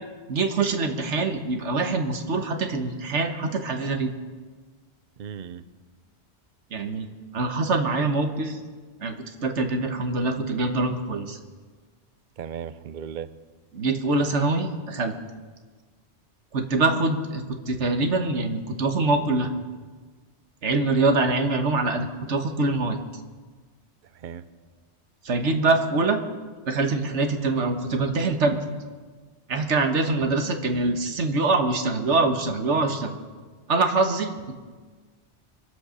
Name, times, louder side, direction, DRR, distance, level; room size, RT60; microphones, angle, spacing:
voice 1, 0.3-4.1 6.7-7.1 7.3-8.6 9.0-9.2 9.4-11.4 13.7-15.2 16.5-19.5 20.6-23.0 25.2-26.2 26.6-28.6 29.5-33.2 33.7-34.5, right 3 dB, 85° right, 5 dB, 1.6 m, -24 dB
voice 2, 5.2-5.6 12.4-13.3 24.1-24.4, right 8 dB, 50° right, 12 dB, 0.7 m, -36 dB
23.5 x 8.0 x 6.3 m, 1.4 s
omnidirectional pair, 1.2 m